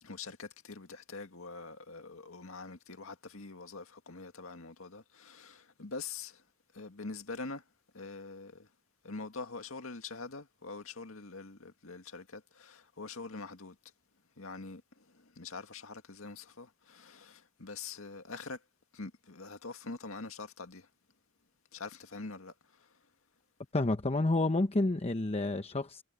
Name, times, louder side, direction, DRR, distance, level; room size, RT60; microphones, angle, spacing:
voice 1, 0.0-6.4 6.7-7.6 7.9-8.7 9.0-13.8 14.4-18.6 18.9-20.9 21.7-22.5 22.8-22.9, left 4 dB, 85° left, 2.0 m, -44 dB
voice 2, 23.7-26.0, left 2 dB, 30° left, 0.9 m, -29 dB
head